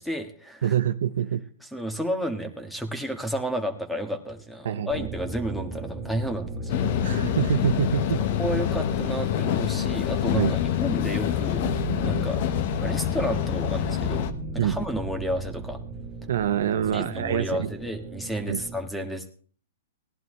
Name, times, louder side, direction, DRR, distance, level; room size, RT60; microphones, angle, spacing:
voice 1, 0.0-0.8 1.6-7.0 8.4-11.7 12.0-12.4 12.8-14.3 14.5-15.8 16.9-19.4, equal, ahead, 6 dB, 1.6 m, -31 dB
voice 2, 0.6-1.4 4.6-5.1 7.0-8.2 10.3-10.6 14.6-14.8 16.3-17.7 18.5-18.6, right 9 dB, 70° right, 11 dB, 0.7 m, -25 dB
sound 1, 4.9-18.8, right 3 dB, 30° right, 1.9 m, -36 dB
sound 2, 6.7-14.3, left 10 dB, 50° left, 1.1 m, -26 dB
17.5 x 11.0 x 3.2 m, 0.43 s
hypercardioid pair, 130°, 0 cm